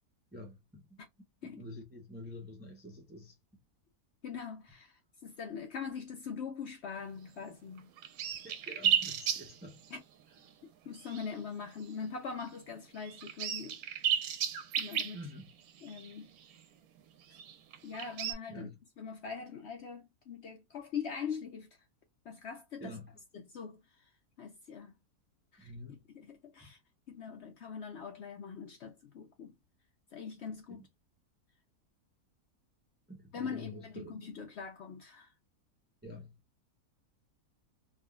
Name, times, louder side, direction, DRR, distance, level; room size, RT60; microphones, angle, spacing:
voice 1, 0.3-1.0 1.4-3.3 8.4-9.8 15.1-15.5 18.5-18.8 22.8-23.2 25.6-26.0 30.7-30.9 33.1-34.2 36.0-36.4, left 1 dB, 15° right, 0.3 m, -47 dB
voice 2, 4.2-7.9 9.9-10.0 10.9-13.8 14.8-15.2 15.8-16.3 17.8-18.7 19.0-21.7 22.3-23.0 23.3-23.8 24.4-24.9 25.5-26.8 27.1-29.5 30.1-30.8 33.3-35.3, left 6 dB, 65° left, 0.7 m, -42 dB
sound 1, 7.5-7.6 7.8-10.0 10.4-10.5 10.9-11.5 11.8-12.1 12.4-12.5 13.0-16.6 17.3-18.3, right 9 dB, 80° right, 1.0 m, -34 dB
3.6 x 2.3 x 2.2 m
omnidirectional pair, 1.6 m